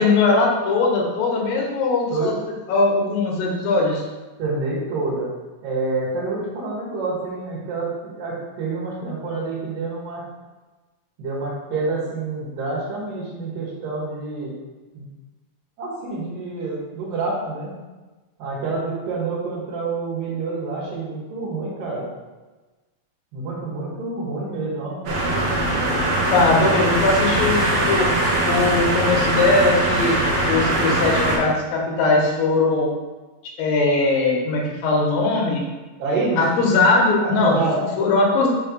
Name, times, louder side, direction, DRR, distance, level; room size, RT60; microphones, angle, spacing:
voice 1, 0.0-2.3 2.7-4.0 26.1-28.1 28.4-30.2 30.5-32.9 33.6-35.6 36.4-38.5, left 3 dB, 85° left, -1 dB, 2.9 m, -20 dB
voice 2, 4.4-5.3 5.6-10.2 11.2-14.5 14.9-15.1 15.8-17.7 18.4-22.1 23.3-25.0 36.0-36.4 37.2-37.8, right 3 dB, 75° right, -8 dB, 3.4 m, -27 dB
sound 1, 25.1-31.4, right 1 dB, 60° right, 2.1 m, -21 dB
6.9 x 3.4 x 5.4 m, 1.2 s
omnidirectional pair, 4.0 m